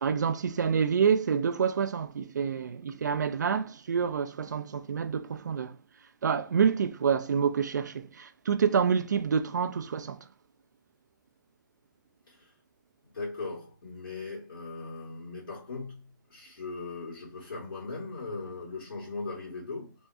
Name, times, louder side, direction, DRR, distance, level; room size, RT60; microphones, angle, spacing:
voice 1, 0.0-5.8 6.2-10.2, right 6 dB, 55° right, 0.4 m, -27 dB
voice 2, 13.1-19.9, left 3 dB, 85° left, 1.9 m, -39 dB
3.5 x 3.1 x 2.7 m
hypercardioid pair, 180°, 11 cm